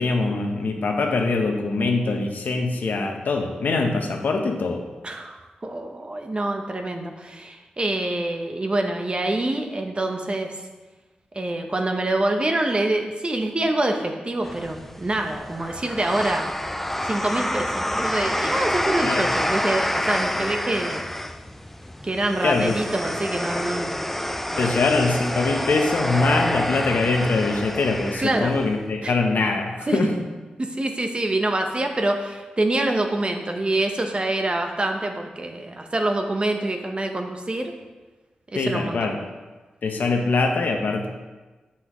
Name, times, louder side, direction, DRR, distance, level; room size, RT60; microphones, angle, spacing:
voice 1, 0.0-4.8 19.0-19.2 22.4-22.7 24.6-30.1 38.5-39.2 39.8-41.1, left 3 dB, 75° left, 3 dB, 0.9 m, -23 dB
voice 2, 5.0-10.5 11.3-16.5 17.0-21.1 22.0-24.0 24.5-24.8 28.2-28.5 29.0-29.1 29.9-30.1 30.6-37.7 38.5-39.1, right 2 dB, 35° right, 4 dB, 1.0 m, -26 dB
sound 1, 14.4-28.7, left 1 dB, 10° left, 0.4 m, -28 dB
7.9 x 5.7 x 3.1 m, 1.2 s
cardioid pair, 45°, 3 cm